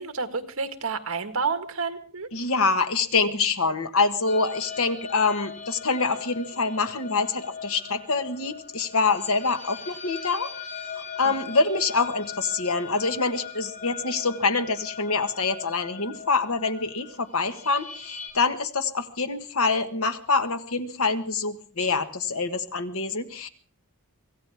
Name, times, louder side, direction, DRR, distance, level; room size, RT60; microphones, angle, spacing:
voice 1, 0.0-2.3 11.2-11.5, right 5 dB, 65° right, 8 dB, 1.8 m, -30 dB
voice 2, 2.3-10.5 11.0-23.5, left 4 dB, 70° left, 9 dB, 1.5 m, -25 dB
sound 1, 4.3-18.3, left 6 dB, 40° left, 5.8 m, -40 dB
25.0 x 16.0 x 3.6 m, 0.40 s
head